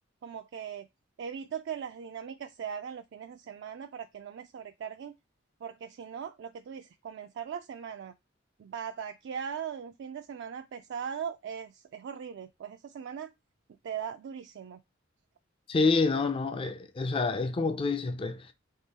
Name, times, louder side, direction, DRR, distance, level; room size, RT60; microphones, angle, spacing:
voice 1, 0.2-0.9 1.2-5.1 5.6-8.1 8.6-13.3 13.8-14.8, right 7 dB, 60° right, 0.3 m, -39 dB
voice 2, 15.7-18.5, left 3 dB, 25° left, 0.4 m, -28 dB
3.7 x 3.0 x 4.0 m
head